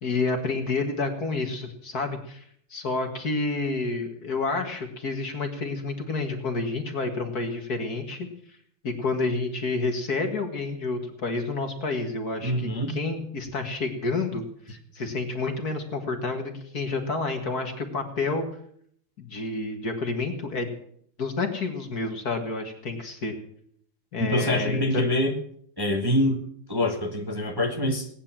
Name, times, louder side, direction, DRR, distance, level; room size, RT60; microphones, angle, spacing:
voice 1, 0.0-2.4 2.7-8.3 8.8-14.4 14.9-18.4 19.2-20.7 21.2-23.3 24.1-25.0, left 3 dB, 45° left, 4 dB, 2.2 m, -29 dB
voice 2, 12.4-12.9 24.2-25.3 25.8-26.4 26.7-28.1, left 1 dB, 10° right, 2 dB, 1.6 m, -25 dB
18.5 x 9.8 x 7.4 m, 0.65 s
omnidirectional pair, 2.4 m